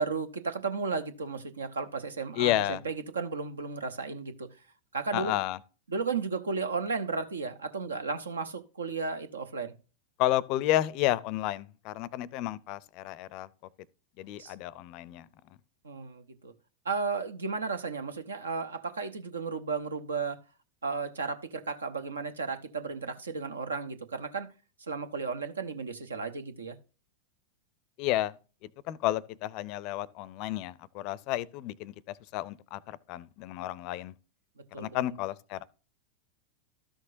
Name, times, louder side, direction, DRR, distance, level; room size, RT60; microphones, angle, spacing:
voice 1, 0.0-4.5 4.9-5.3 5.9-9.7 14.4-14.5 15.8-16.5 16.8-20.4 20.8-24.5 24.8-26.8 34.7-34.9, right 4 dB, 70° right, 0.9 m, -34 dB
voice 2, 2.4-2.8 5.1-5.6 10.2-13.5 14.2-15.3 28.0-28.3 28.6-34.1 34.8-35.6, left 14 dB, 40° left, 0.5 m, -31 dB
13.0 x 6.3 x 2.5 m
figure-of-eight pair, 90°, 0 cm